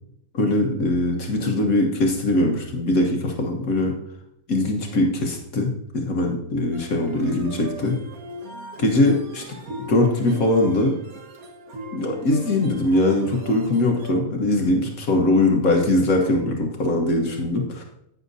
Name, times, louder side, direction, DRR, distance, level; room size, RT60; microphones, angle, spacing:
voice 1, 0.3-4.0 4.5-8.0 8.8-9.4 9.9-11.0 11.9-17.8, left 2 dB, 70° left, 1 dB, 1.7 m, -21 dB
sound 1, 6.7-14.1, right 1 dB, 75° right, 1.8 m, -38 dB
11.5 x 9.1 x 2.7 m, 0.80 s
omnidirectional pair, 1.5 m